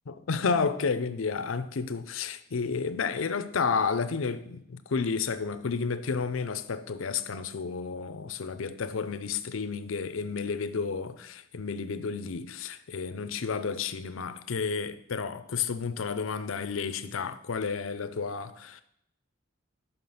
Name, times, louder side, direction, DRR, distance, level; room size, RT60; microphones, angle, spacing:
voice 1, 0.1-18.8, left 5 dB, 80° left, 0.6 m, -31 dB
5.9 x 5.6 x 6.9 m
head